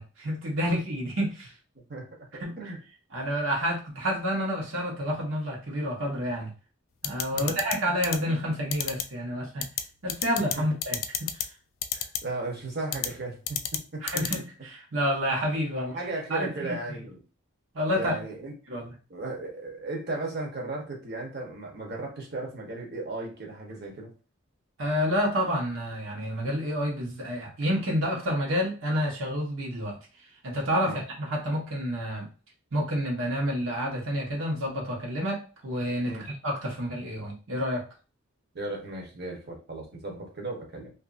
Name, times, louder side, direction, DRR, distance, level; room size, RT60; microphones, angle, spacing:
voice 1, 0.0-1.5 2.4-2.6 3.1-6.5 7.0-9.7 10.0-11.5 14.0-15.9 16.3-17.0 17.7-18.1 18.7-18.9 24.8-30.0 30.4-32.3 32.7-37.8, equal, 80° right, -1 dB, 1.1 m, -29 dB
voice 2, 1.9-2.8 7.3-7.6 10.5-10.6 11.9-14.2 15.8-17.2 17.9-18.5 19.1-24.1 30.8-31.0 36.1-36.3 38.5-40.9, right 2 dB, 55° right, 0 dB, 1.0 m, -36 dB
sound 1, 7.0-7.7 8.0-8.2 8.7-9.0 9.6-9.8 10.1-10.5 10.8-11.4 11.8-12.2 12.9-13.1 13.5-13.8 14.1-14.4, left 10 dB, 75° left, 0.4 m, -28 dB
2.8 x 2.6 x 2.5 m, 0.34 s
head